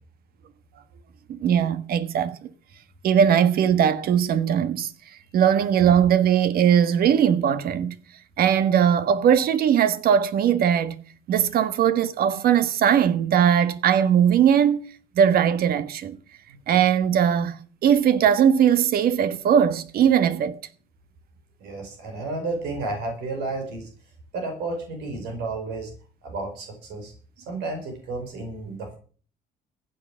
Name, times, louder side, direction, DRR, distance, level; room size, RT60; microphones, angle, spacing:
voice 1, 1.3-2.4 3.0-4.9 5.3-7.9 8.4-11.0 11.3-14.9 15.1-16.2 16.7-20.6, right 8 dB, 65° right, 1.4 m, -20 dB
voice 2, 21.6-23.9 24.3-25.9 26.2-29.0, right 2 dB, 85° right, 5.3 m, -32 dB
15.5 x 9.1 x 7.4 m
cardioid pair, 110°, 17 cm